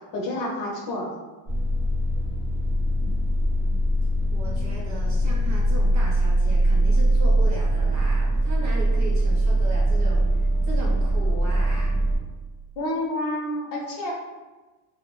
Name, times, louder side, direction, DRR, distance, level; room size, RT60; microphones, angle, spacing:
voice 1, 0.1-1.2 12.8-14.1, left 1 dB, 45° left, -2 dB, 0.6 m, -29 dB
sound 1, 1.5-12.2, right 1 dB, 25° right, 0.9 m, -22 dB
voice 2, 2.9-3.3 3.6-3.8 4.3-12.0, right 1 dB, 40° right, -3 dB, 0.4 m, -37 dB
2.4 x 2.0 x 2.9 m, 1.2 s
cardioid pair, 160°, 46 cm